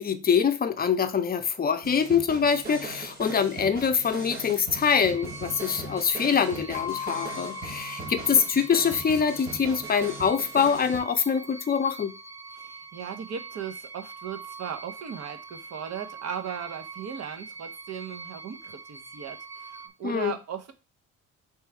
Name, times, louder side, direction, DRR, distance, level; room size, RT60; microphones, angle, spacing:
voice 1, 0.0-12.1 20.0-20.3, left 6 dB, 30° left, 0.6 m, -24 dB
sound 1, 1.8-11.0, right 2 dB, 30° right, 1.4 m, -40 dB
sound 2, 5.0-19.9, right 4 dB, 10° right, 0.6 m, -43 dB
sound 3, 6.7-9.2, left 10 dB, 85° left, 0.5 m, -39 dB
voice 2, 12.5-20.7, right 8 dB, 60° right, 0.8 m, -37 dB
3.3 x 3.1 x 4.6 m
cardioid pair, 90°, 30 cm